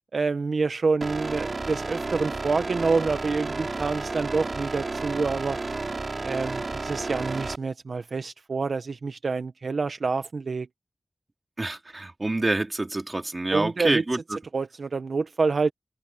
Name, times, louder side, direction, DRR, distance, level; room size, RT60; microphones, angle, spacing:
voice 1, 0.1-5.6 6.2-10.7 13.5-14.0 14.5-15.7, right 4 dB, 70° right, 0.9 m, -27 dB
sound 1, 1.0-7.6, right 3 dB, 55° right, 4.7 m, -32 dB
voice 2, 11.6-14.2, right 2 dB, 35° right, 3.9 m, -27 dB
wide cardioid pair, 65°, 0 cm